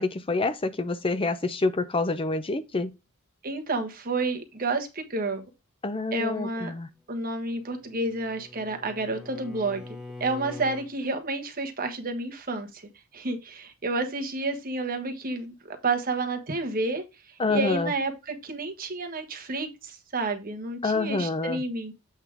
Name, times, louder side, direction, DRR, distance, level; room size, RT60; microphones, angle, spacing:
voice 1, 0.0-2.9 5.8-6.9 17.4-17.9 20.8-21.6, left 3 dB, 25° left, 0.5 m, -27 dB
voice 2, 3.4-5.4 6.1-6.7 7.1-9.8 10.2-12.8 13.1-17.0 17.5-21.9, right 3 dB, 40° right, 1.4 m, -30 dB
Bowed string instrument, 7.5-10.9, left 2 dB, 5° right, 1.1 m, -43 dB
8.0 x 3.7 x 4.7 m
head